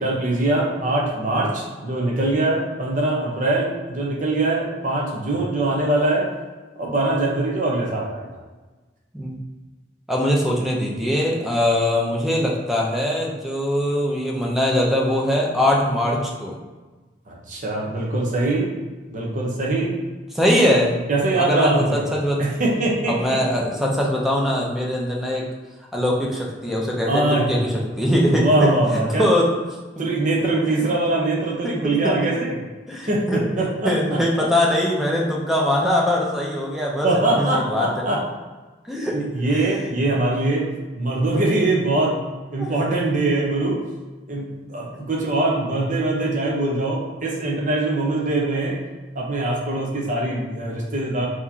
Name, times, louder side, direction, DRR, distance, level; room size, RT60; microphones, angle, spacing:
voice 1, 0.0-6.3 6.8-8.4 17.3-18.7 19.1-19.9 21.1-22.1 22.4-23.4 27.1-27.6 28.2-29.3 30.0-32.6 33.1-34.2 37.0-38.2 39.1-40.7 40.9-42.2 42.5-43.8 44.3-48.8 49.1-51.3, right 2 dB, 45° right, -3 dB, 0.9 m, -22 dB
voice 2, 10.1-16.5 20.3-21.0 21.2-22.4 23.1-25.5 25.9-27.2 27.5-28.8 29.2-29.5 30.8-30.9 31.6-31.7 32.0-32.1 32.9-33.4 33.8-38.1 38.9-39.2 39.5-39.6 42.6-42.7, left 1 dB, ahead, -3 dB, 0.6 m, -22 dB
4.6 x 3.0 x 2.8 m, 1.2 s
head